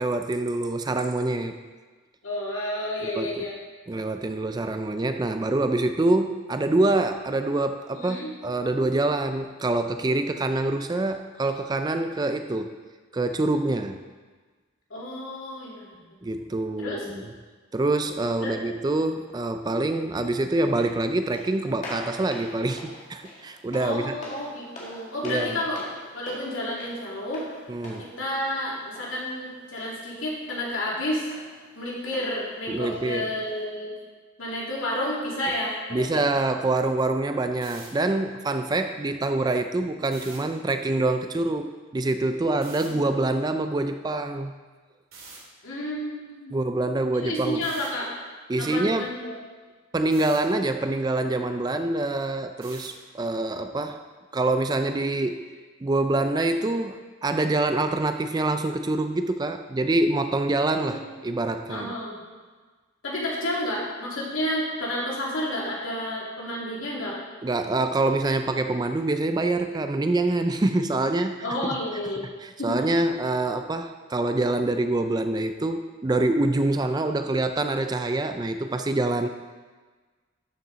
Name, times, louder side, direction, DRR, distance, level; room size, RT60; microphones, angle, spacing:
voice 1, 0.0-1.5 3.2-3.5 3.9-12.8 13.1-14.0 16.2-17.3 17.7-24.1 25.2-25.6 27.7-28.1 32.7-33.3 35.9-44.5 46.5-47.6 48.5-49.1 49.9-54.0 54.3-55.5 55.8-61.9 67.4-71.5 72.4-79.3, right 2 dB, 20° right, 8 dB, 0.3 m, -25 dB
voice 2, 2.2-3.6 7.9-8.3 14.9-15.9 16.8-17.1 18.4-18.6 23.8-25.8 26.1-27.5 28.0-31.3 31.8-33.9 34.4-36.3 42.8-43.1 45.6-46.5 47.2-48.1 48.6-49.4 60.9-61.0 61.3-61.4 61.7-62.2 63.0-67.2 71.4-72.2 72.6-72.8, left 1 dB, 70° left, -4 dB, 2.6 m, -31 dB
sound 1, 20.6-33.6, left 1 dB, 35° left, 2.0 m, -45 dB
sound 2, 37.6-37.9 40.0-40.4 42.6-42.9 45.1-45.4 47.6-47.9 50.1-50.4 52.6-53.0, right 4 dB, 75° right, 2.5 m, -44 dB
12.5 x 6.8 x 4.0 m, 1.4 s
head